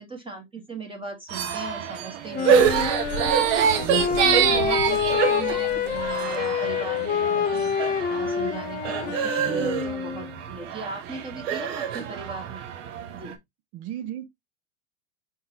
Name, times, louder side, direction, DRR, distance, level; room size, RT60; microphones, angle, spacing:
voice 1, 0.0-12.7 13.1-13.4, right 3 dB, 15° right, 1.0 m, -38 dB
sound 1, 1.3-13.3, right 8 dB, 60° right, 0.9 m, -26 dB
Wind instrument woodwind instrument, 2.3-10.3, left 7 dB, 20° left, 0.6 m, -27 dB
voice 2, 3.8-4.2 9.4-10.0 13.7-14.3, right 12 dB, 35° right, 0.6 m, -34 dB
4.3 x 3.7 x 2.8 m
hypercardioid pair, 105°, 42 cm